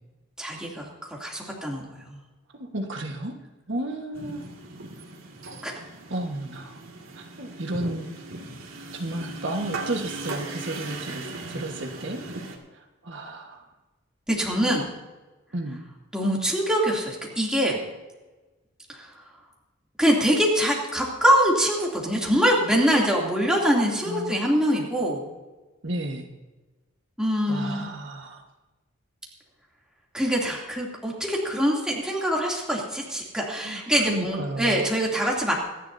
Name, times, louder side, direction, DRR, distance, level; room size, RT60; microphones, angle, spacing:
voice 1, 0.4-2.2 5.6-5.7 14.3-14.9 16.1-17.8 18.9-19.1 20.0-25.3 27.2-27.9 30.1-35.5, equal, 5° right, -3 dB, 2.8 m, -24 dB
voice 2, 2.5-3.3 3.7-4.4 6.1-6.8 7.1-8.1 8.9-12.2 12.7-13.7 15.5-15.8 24.1-24.4 25.8-26.3 27.5-28.4 33.6-34.8, right 1 dB, 60° right, 2 dB, 1.5 m, -33 dB
sound 1, 4.1-12.6, right 2 dB, 85° right, 2.3 m, -38 dB
25.5 x 11.0 x 2.7 m, 1.2 s
head